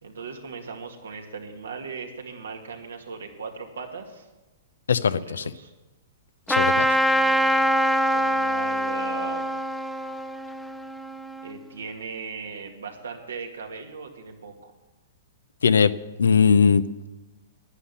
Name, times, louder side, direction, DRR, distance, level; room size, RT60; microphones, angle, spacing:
voice 1, 0.0-4.3 5.1-5.7 7.1-7.7 8.0-9.5 11.4-14.7, right 5 dB, 85° right, 3 dB, 2.1 m, -38 dB
voice 2, 4.9-5.5 6.5-6.9 15.6-15.9 16.2-17.1, left 6 dB, 85° left, 14 dB, 0.7 m, -20 dB
Trumpet, 6.5-11.5, equal, ahead, 0.6 m, -24 dB
11.5 x 10.0 x 8.3 m, 1.1 s
hypercardioid pair, 125°, 0 cm